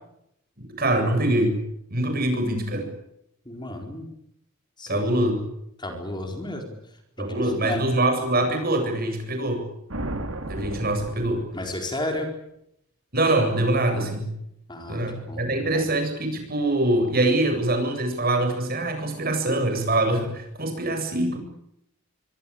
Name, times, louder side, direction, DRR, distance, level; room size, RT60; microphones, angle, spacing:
voice 1, 0.6-1.6 1.9-2.9 4.9-5.4 7.2-9.7 10.5-11.4 13.1-14.3 14.9-21.4, right 1 dB, 45° right, 6 dB, 7.9 m, -24 dB
voice 2, 3.4-4.1 4.8-5.2 5.8-6.8 7.2-7.8 11.5-12.3 14.7-15.0 15.3-15.9, left 1 dB, 20° left, 4 dB, 4.5 m, -33 dB
sound 1, 9.9-12.0, right 1 dB, 75° right, 4.1 m, -34 dB
26.0 x 24.0 x 8.8 m, 0.79 s
head